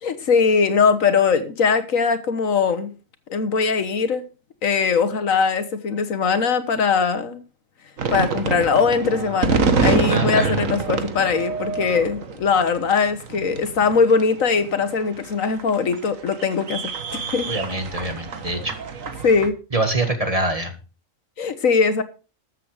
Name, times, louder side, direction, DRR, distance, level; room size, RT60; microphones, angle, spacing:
voice 1, 0.0-2.9 3.3-4.2 4.6-7.4 8.1-17.5 19.2-19.6 21.4-22.0, left 5 dB, 80° left, 1.6 m, -21 dB
sound 1, 8.0-19.5, right 5 dB, 75° right, 1.7 m, -26 dB
voice 2, 10.1-10.6 17.5-18.7 19.7-20.7, right 2 dB, 25° right, 1.8 m, -24 dB
13.5 x 7.8 x 4.9 m
omnidirectional pair, 1.4 m